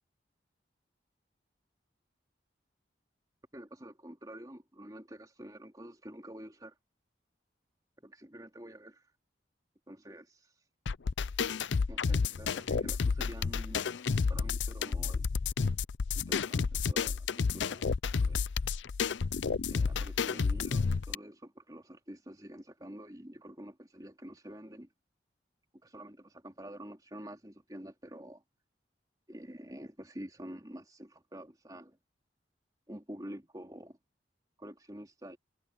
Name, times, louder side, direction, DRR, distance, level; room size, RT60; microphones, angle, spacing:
voice 1, 3.5-6.7 8.0-9.0 9.9-10.5 11.9-13.8 14.3-15.3 16.1-17.9 18.2-18.4 19.7-24.9 25.8-28.4 29.3-32.0 32.9-34.0 34.6-35.4, equal, 20° right, 3.2 m, -48 dB
sound 1, 10.9-21.1, left 5 dB, 80° left, 0.5 m, -31 dB
head